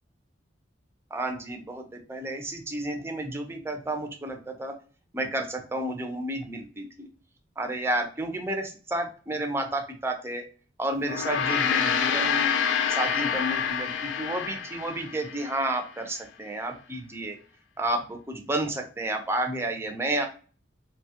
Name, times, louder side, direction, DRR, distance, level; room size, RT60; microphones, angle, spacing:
voice 1, 1.1-4.7 5.1-7.1 7.6-10.4 10.8-12.5 12.9-17.4 17.8-20.3, right 1 dB, 15° right, 4 dB, 0.5 m, -31 dB
Gong, 11.0-15.6, left 7 dB, 75° left, 0.4 m, -27 dB
2.8 x 2.3 x 2.7 m, 0.38 s
head